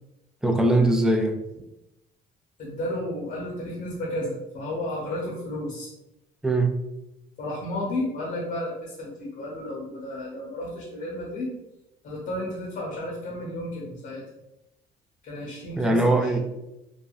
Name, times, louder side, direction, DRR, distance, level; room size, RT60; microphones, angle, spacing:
voice 1, 0.4-1.4 6.4-6.8 15.8-16.4, right 2 dB, 5° right, 5 dB, 0.3 m, -21 dB
voice 2, 2.6-5.9 7.4-11.5 12.0-14.2 15.2-16.4, left 1 dB, 60° left, -3 dB, 0.8 m, -32 dB
3.3 x 2.1 x 2.3 m, 0.90 s
cardioid pair, 110°, 17 cm